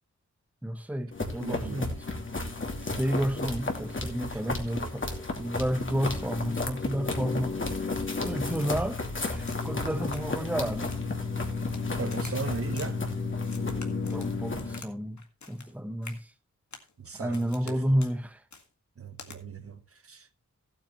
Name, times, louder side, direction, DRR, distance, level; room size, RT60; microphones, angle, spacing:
voice 1, 0.6-1.9 2.8-7.6 8.2-11.0 14.1-15.2 15.5-16.3 17.2-18.4, equal, 5° right, 1.1 m, -31 dB
sound 1, 1.1-14.8, left 3 dB, 40° left, 2.5 m, -32 dB
voice 2, 1.2-1.8 4.3-5.1 12.0-13.0 17.0-18.0 19.0-20.4, right 4 dB, 50° right, 1.1 m, -39 dB
Crack, 8.5-9.0 9.5-9.8 10.1-10.5 10.8-11.8 12.1-12.9 13.4-14.9 15.2-15.7 16.0-16.2 16.7-16.9 17.3-17.7 18.0-18.1 18.5-18.7 19.2-19.4, left 5 dB, 70° left, 2.0 m, -48 dB
15.5 x 8.8 x 3.1 m
wide cardioid pair, 90°, 30 cm